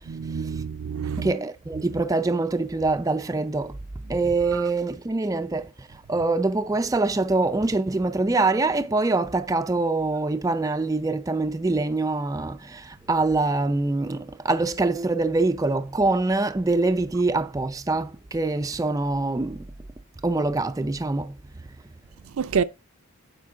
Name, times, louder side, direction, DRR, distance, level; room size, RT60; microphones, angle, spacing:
voice 1, 0.1-1.3 4.5-4.7 22.4-22.6, right 6 dB, 75° right, 0.5 m, -27 dB
voice 2, 1.2-3.8 4.1-19.7 20.2-21.4, right 3 dB, 15° right, 0.3 m, -24 dB
8.5 x 5.1 x 3.4 m
head